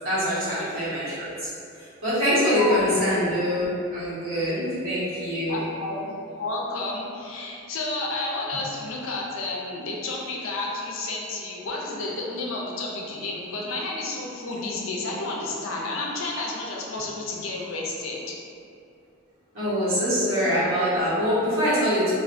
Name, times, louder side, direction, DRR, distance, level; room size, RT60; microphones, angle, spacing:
voice 1, 0.0-1.5 2.0-3.7 3.9-4.6 4.8-5.6 19.5-22.1, equal, 80° right, -12 dB, 1.1 m, -24 dB
voice 2, 5.5-18.3, left 2 dB, 75° left, -3 dB, 0.4 m, -31 dB
2.3 x 2.2 x 2.5 m, 2.5 s
head